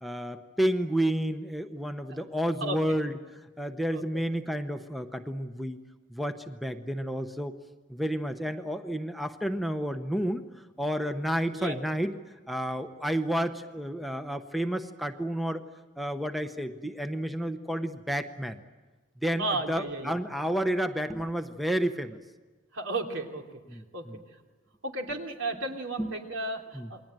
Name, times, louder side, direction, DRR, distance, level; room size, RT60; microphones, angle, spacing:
voice 1, 0.0-3.1 3.6-5.8 6.1-7.5 7.9-10.4 10.8-12.1 12.5-15.6 16.0-18.6 19.2-22.2 23.7-24.2 26.0-26.1 26.7-26.9, equal, ahead, 7 dB, 0.8 m, -30 dB
voice 2, 3.9-4.2 11.5-11.8 19.4-20.2 22.7-23.6 23.9-24.0 24.8-27.0, right 2 dB, 70° right, 2 dB, 3.1 m, -34 dB
28.5 x 21.5 x 9.0 m, 1.3 s
head